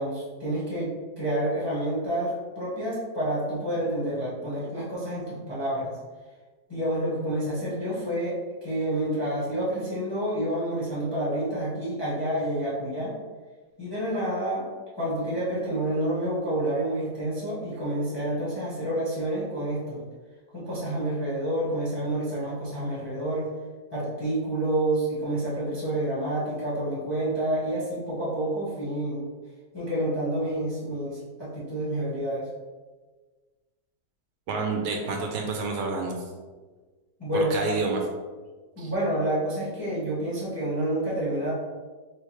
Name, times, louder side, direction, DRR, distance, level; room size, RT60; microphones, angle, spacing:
voice 1, 0.0-5.9 6.7-13.2 13.8-14.6 14.9-20.0 20.5-23.5 23.9-29.2 29.7-32.4 37.2-37.5 38.8-41.5, right 1 dB, 20° left, -8 dB, 0.7 m, -28 dB
voice 2, 34.5-36.2 37.3-38.1 38.8-38.9, right 3 dB, 75° right, 2 dB, 1.2 m, -28 dB
3.7 x 3.1 x 3.1 m, 1.4 s
omnidirectional pair, 2.0 m